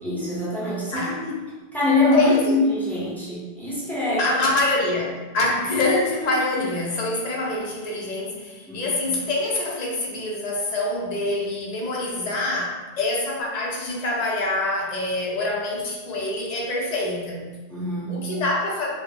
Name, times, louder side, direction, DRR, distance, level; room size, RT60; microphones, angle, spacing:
voice 1, 0.0-1.4 1.7-4.3 6.6-6.7 8.7-9.0 17.7-18.3, left 2 dB, ahead, -8 dB, 0.5 m, -24 dB
voice 2, 2.1-2.5 4.2-17.5 18.1-18.9, left 2 dB, 50° left, -3 dB, 0.5 m, -25 dB
2.0 x 2.0 x 3.6 m, 1.3 s
omnidirectional pair, 1.1 m